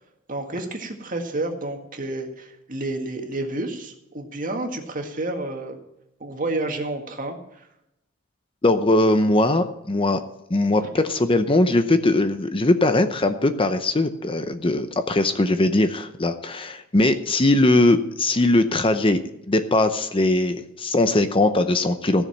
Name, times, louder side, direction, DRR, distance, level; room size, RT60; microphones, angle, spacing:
voice 1, 0.3-5.8 6.2-7.7 10.8-10.9, right 2 dB, 40° right, 4 dB, 1.9 m, -30 dB
voice 2, 8.6-10.2 10.5-19.2 19.5-22.2, left 2 dB, 25° left, 9 dB, 0.7 m, -20 dB
16.0 x 7.0 x 7.4 m, 0.86 s
head